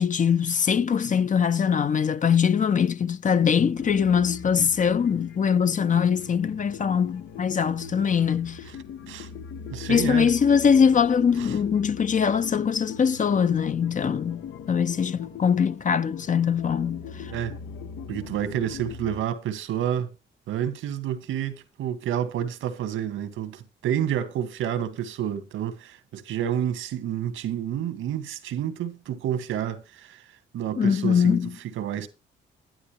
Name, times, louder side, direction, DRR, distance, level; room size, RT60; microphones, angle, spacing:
voice 1, 0.0-8.6 9.9-17.3 30.8-31.6, left 7 dB, 40° left, 0.8 m, -22 dB
sound 1, 3.8-19.2, left 7 dB, 75° left, 1.3 m, -40 dB
voice 2, 9.7-10.3 11.4-11.5 17.3-17.6 18.1-20.1 20.5-30.2 30.5-31.4 31.8-32.1, right 10 dB, 80° right, 1.9 m, -29 dB
11.0 x 9.7 x 3.2 m
cardioid pair, 90°, 20 cm